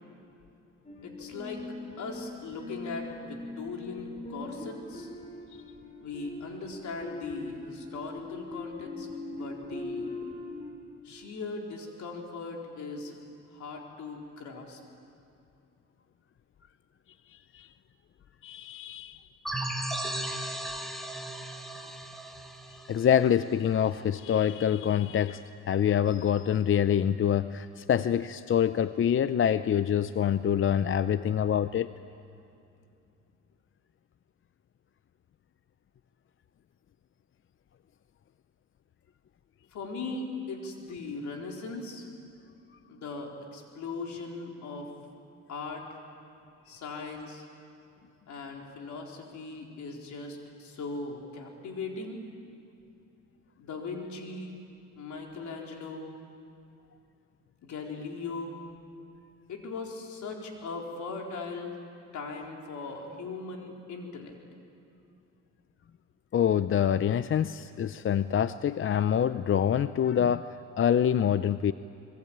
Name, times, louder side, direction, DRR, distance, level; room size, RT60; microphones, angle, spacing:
sound 1, 0.8-10.7, left 2 dB, 20° left, 6.8 m, -41 dB
voice 1, 1.0-1.6 2.0-5.1 6.0-10.2 11.0-13.2 13.5-14.8 39.7-42.1 42.9-44.9 45.5-46.0 46.7-47.5 48.3-52.2 53.6-54.6 54.9-56.1 57.6-58.6 59.5-61.8 62.1-64.4, left 3 dB, 70° left, 1 dB, 4.3 m, -39 dB
voice 2, 17.3-17.7 18.4-19.3 22.7-31.9 66.3-71.7, left 9 dB, 45° left, 13 dB, 0.6 m, -26 dB
sound 2, 19.4-23.9, right 1 dB, ahead, 2.2 m, -36 dB
26.5 x 21.5 x 8.9 m, 2.6 s
cardioid pair, 90°, 30 cm